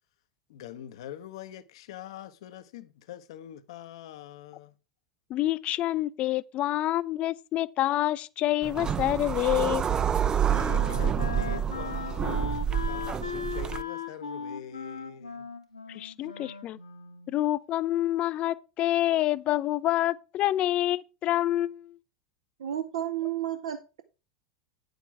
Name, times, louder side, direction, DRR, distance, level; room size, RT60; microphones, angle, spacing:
voice 1, 0.5-4.8 10.4-15.5 16.2-16.3, left 11 dB, 60° left, 0.7 m, -44 dB
voice 2, 5.3-9.9 15.9-16.8 17.3-22.0, left 14 dB, 40° left, 0.4 m, -27 dB
sound 1, 8.6-13.8, right 8 dB, 25° right, 0.5 m, -28 dB
Wind instrument woodwind instrument, 9.6-17.4, left 5 dB, 80° left, 1.3 m, -38 dB
voice 3, 22.6-24.0, right 11 dB, 65° right, 0.7 m, -32 dB
9.1 x 6.5 x 4.6 m
figure-of-eight pair, 80°, 3 cm